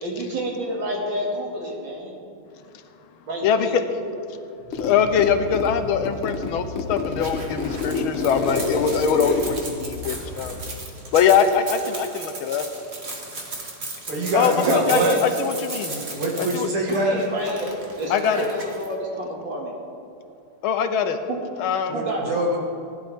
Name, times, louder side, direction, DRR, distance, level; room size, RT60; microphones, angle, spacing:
voice 1, 0.0-2.1 3.3-4.1 5.3-5.5 14.6-15.2 16.9-17.7 18.0-19.7 21.3-21.4 21.9-22.3, right 1 dB, 60° right, -3 dB, 2.9 m, -29 dB
sound 1, 4.6-11.1, left 2 dB, 30° left, 1.2 m, -37 dB
Zipper (clothing), 4.7-5.7 6.0-10.7, left 3 dB, 50° left, 0.8 m, -29 dB
voice 2, 4.8-10.6 11.1-12.7 14.3-16.0 16.4-16.7 18.1-18.5 20.6-21.2 21.6-21.9, left 7 dB, 75° left, 8 dB, 1.5 m, -22 dB
sound 2, 7.2-18.9, right 2 dB, 35° right, 1.6 m, -36 dB
voice 3, 14.1-15.1 15.9-17.2 21.9-22.0 22.3-22.6, right 1 dB, 85° right, 0 dB, 2.7 m, -23 dB
17.5 x 11.5 x 3.5 m, 2.7 s
omnidirectional pair, 2.4 m